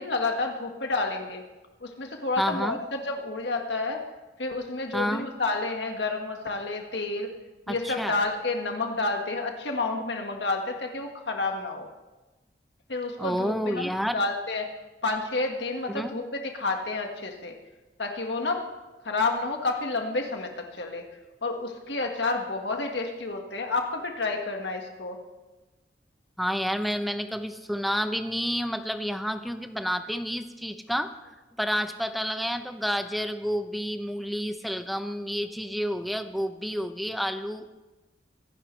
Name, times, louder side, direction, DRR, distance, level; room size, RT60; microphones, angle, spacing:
voice 1, 0.0-1.4 1.8-4.0 4.4-7.3 7.7-11.9 12.9-14.7 15.0-17.5 18.0-18.6 19.0-21.0 21.4-25.2, left 3 dB, 75° left, 3 dB, 1.7 m, -30 dB
voice 2, 2.4-2.8 4.9-5.3 7.7-8.1 13.2-14.2 15.9-16.1 26.4-37.7, equal, ahead, 8 dB, 0.7 m, -30 dB
24.5 x 11.5 x 3.3 m, 1.1 s
head